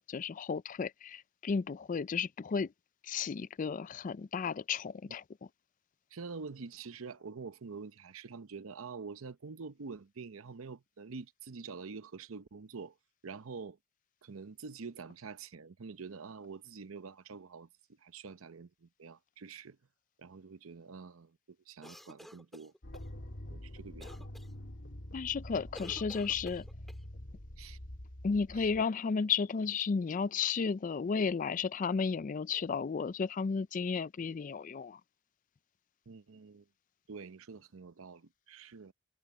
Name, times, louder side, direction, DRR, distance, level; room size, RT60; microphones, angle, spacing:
voice 1, 0.0-2.7 3.0-5.2 25.1-26.7 28.2-35.0, left 5 dB, 40° left, 0.4 m, -33 dB
voice 2, 6.1-12.9 13.2-13.8 14.2-17.7 18.0-19.8 20.2-21.4 21.7-22.7 23.5-24.1 27.6-27.8 28.5-28.7 36.1-36.6 37.1-38.9, right 4 dB, 85° right, 0.7 m, -46 dB
sound 1, 21.8-23.1 24.0-24.5 25.7-27.0, equal, ahead, 3.0 m, -51 dB
sound 2, 22.8-28.8, left 1 dB, 60° left, 1.8 m, -46 dB
head